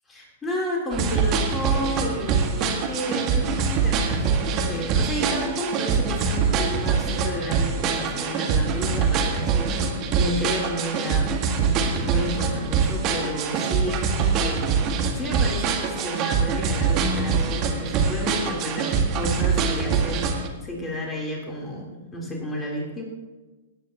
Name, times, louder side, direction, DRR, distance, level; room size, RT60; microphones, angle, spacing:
voice 1, 0.1-11.3 11.6-20.3 20.6-23.0, equal, 15° left, -2 dB, 3.4 m, -31 dB
sound 1, 0.9-20.5, right 5 dB, 35° right, 1.7 m, -24 dB
19.0 x 9.3 x 2.9 m, 1.2 s
hypercardioid pair, 115°, 0 cm